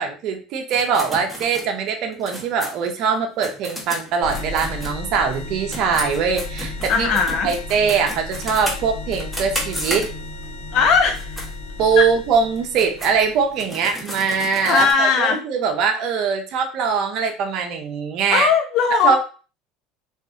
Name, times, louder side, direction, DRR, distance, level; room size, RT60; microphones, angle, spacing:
voice 1, 0.0-7.1 7.4-10.1 11.8-18.5 19.0-19.2, right 6 dB, 60° right, 4 dB, 0.5 m, -22 dB
sound 1, 0.7-5.4 5.7-10.5 11.0-11.5 11.9-12.0 12.6-14.9, equal, 5° left, 0.8 m, -33 dB
sound 2, 4.2-13.6, left 2 dB, 90° left, 1.1 m, -34 dB
voice 2, 6.9-7.5 10.7-11.2 12.0-12.1 14.7-15.4 18.3-19.2, left 5 dB, 60° left, 4 dB, 0.6 m, -18 dB
2.6 x 2.4 x 2.4 m, 0.36 s
supercardioid pair, 110°, 0 cm